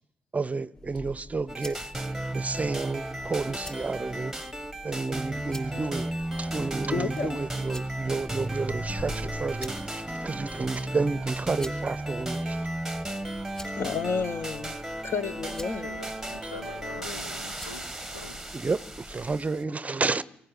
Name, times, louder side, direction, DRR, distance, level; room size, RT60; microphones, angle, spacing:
voice 1, 0.3-4.3 4.8-6.1 6.4-12.6 18.6-20.2, right 3 dB, 25° right, 0.7 m, -31 dB
sound 1, 0.7-19.5, left 1 dB, 15° left, 4.4 m, -48 dB
sound 2, 1.5-19.6, right 1 dB, 5° right, 1.1 m, -34 dB
sound 3, 5.1-10.2, left 2 dB, 65° left, 3.2 m, -46 dB
voice 2, 5.3-6.0 15.8-18.4, left 3 dB, 85° left, 0.8 m, -45 dB
voice 3, 6.9-7.4 13.7-14.8 15.0-15.9, left 5 dB, 45° left, 1.0 m, -30 dB
24.0 x 17.5 x 6.4 m
figure-of-eight pair, 45°, 6 cm